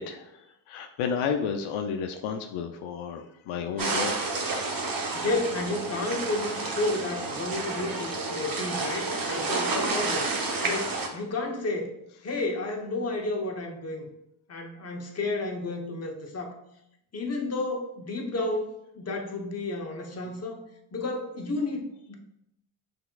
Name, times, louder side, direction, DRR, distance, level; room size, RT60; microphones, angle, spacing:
voice 1, 0.0-4.9 11.1-11.2, left 6 dB, 80° left, 5 dB, 0.6 m, -33 dB
sound 1, 3.8-11.1, right 3 dB, 45° right, 0.9 m, -30 dB
voice 2, 5.1-10.3 10.6-11.9 12.2-14.1 14.5-16.6 17.1-20.6 20.9-22.1, left 2 dB, 30° left, 2 dB, 0.9 m, -31 dB
5.7 x 3.5 x 2.3 m, 0.80 s
cardioid pair, 70°, 49 cm